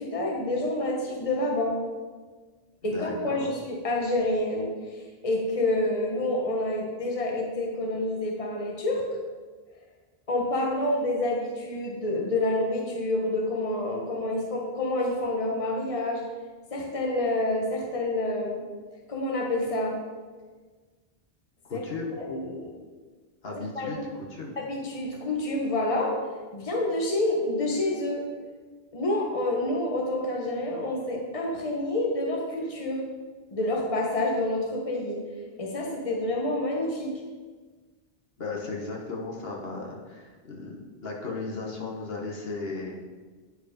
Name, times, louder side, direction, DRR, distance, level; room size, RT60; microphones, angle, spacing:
voice 1, 0.0-1.8 2.8-9.0 10.3-16.2 16.7-18.6 19.1-20.0 21.7-21.8 22.2-22.7 23.7-24.0 24.6-26.1 26.5-28.2 28.9-33.0 33.5-35.2 35.6-37.1, left 1 dB, 35° left, -1 dB, 1.3 m, -28 dB
voice 2, 2.9-3.5 21.7-22.2 23.4-24.5 38.4-43.0, left 3 dB, 70° left, -2 dB, 1.5 m, -36 dB
9.5 x 4.7 x 5.3 m, 1.4 s
omnidirectional pair, 1.0 m